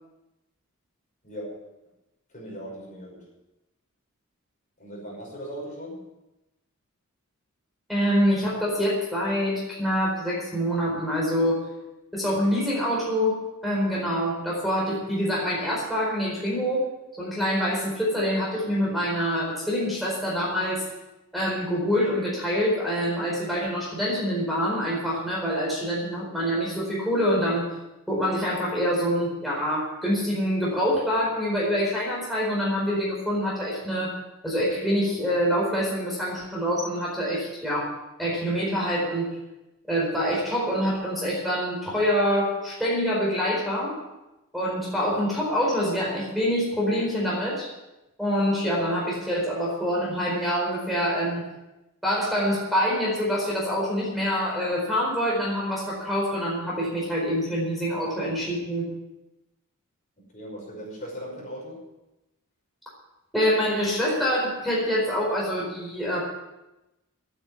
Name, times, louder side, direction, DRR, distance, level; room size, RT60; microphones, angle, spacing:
voice 1, 1.2-1.7 2.3-3.3 4.8-6.1 60.3-61.9, equal, 35° left, -2 dB, 5.7 m, -38 dB
voice 2, 7.9-11.6 12.1-16.9 17.2-20.8 21.3-27.7 28.1-34.2 34.4-37.9 38.2-39.4 39.9-44.0 44.5-47.7 48.2-51.5 52.0-58.9 63.3-66.2, equal, ahead, -5 dB, 4.5 m, -25 dB
12.5 x 9.2 x 9.5 m, 0.99 s
head